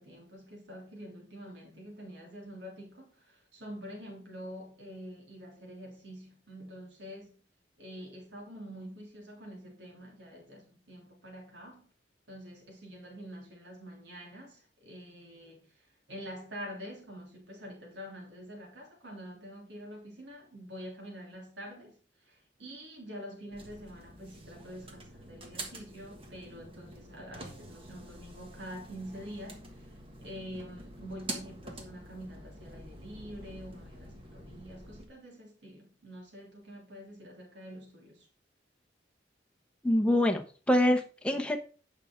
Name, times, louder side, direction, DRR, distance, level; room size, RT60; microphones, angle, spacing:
voice 1, 0.0-7.4 7.8-11.9 12.3-29.9 30.2-38.3, equal, 75° right, 3.3 m, -46 dB
sound 1, 23.5-35.0, right 1 dB, 30° right, 1.5 m, -46 dB
voice 2, 39.8-41.6, left 1 dB, 5° left, 0.9 m, -25 dB
8.9 x 5.6 x 4.4 m
head